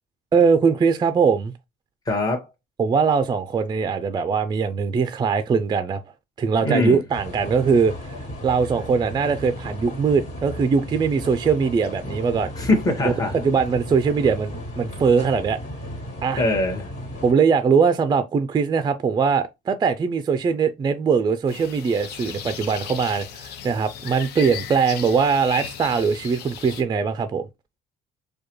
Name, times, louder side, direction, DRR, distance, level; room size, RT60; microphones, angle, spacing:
voice 1, 0.3-1.5 2.8-6.0 6.4-8.2 8.4-12.5 13.0-15.6 16.2-16.4 17.2-27.4, right 5 dB, 25° right, 0.4 m, -21 dB
voice 2, 2.1-2.5 6.6-7.0 12.6-13.4 16.4-16.9, left 2 dB, 20° left, 1.4 m, -22 dB
sound 1, 7.1-17.3, equal, 40° left, 2.2 m, -35 dB
sound 2, 21.5-26.8, left 9 dB, 75° left, 0.7 m, -36 dB
4.6 x 2.3 x 3.0 m
cardioid pair, 110°, 17 cm